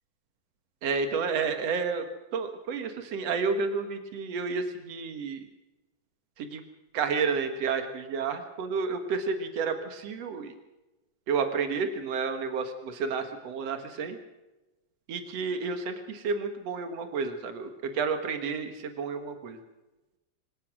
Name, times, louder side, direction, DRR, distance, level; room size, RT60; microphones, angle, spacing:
voice 1, 0.8-2.1 2.3-5.4 6.4-6.6 6.9-10.5 11.3-14.2 15.1-19.6, right 5 dB, 85° right, 7 dB, 1.4 m, -31 dB
25.0 x 17.0 x 6.2 m, 1.0 s
omnidirectional pair, 5.5 m